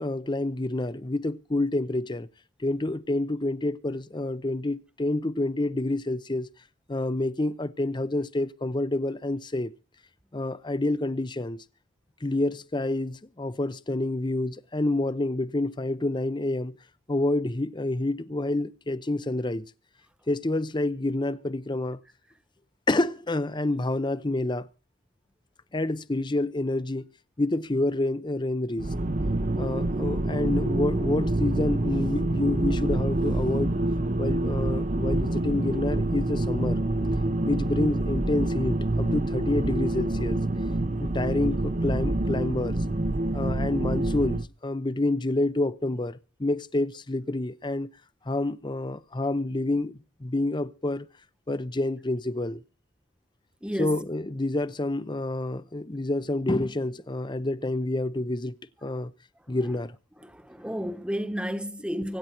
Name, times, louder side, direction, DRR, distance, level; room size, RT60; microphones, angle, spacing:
voice 1, 0.0-2.3 2.6-6.5 6.9-9.7 10.3-11.6 12.2-16.7 17.1-19.6 20.3-22.0 22.9-24.7 25.7-27.1 27.4-28.9 29.5-33.8 34.2-36.8 37.5-40.4 41.0-42.8 43.3-47.9 48.3-51.1 51.5-52.6 53.8-59.1 59.5-59.9, left 2 dB, 25° left, 0.7 m, -28 dB
sound 1, 28.8-44.4, right 1 dB, 40° right, 0.8 m, -27 dB
voice 2, 53.6-54.0 60.2-62.2, equal, 5° right, 1.2 m, -31 dB
25.0 x 9.2 x 4.5 m
head